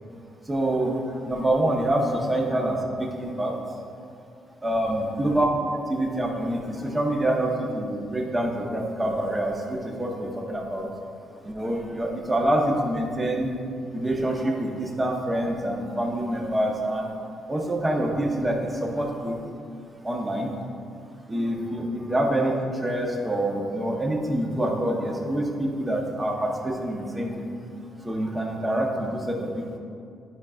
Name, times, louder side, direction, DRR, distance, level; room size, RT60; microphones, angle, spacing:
voice 1, 0.5-3.6 4.6-10.9 11.4-13.5 13.9-17.1 17.5-19.4 20.0-20.6 21.3-27.5 28.0-29.8, right 1 dB, 20° right, 0 dB, 1.0 m, -26 dB
10.5 x 5.0 x 2.4 m, 2.4 s
cardioid pair, 90°, 0 cm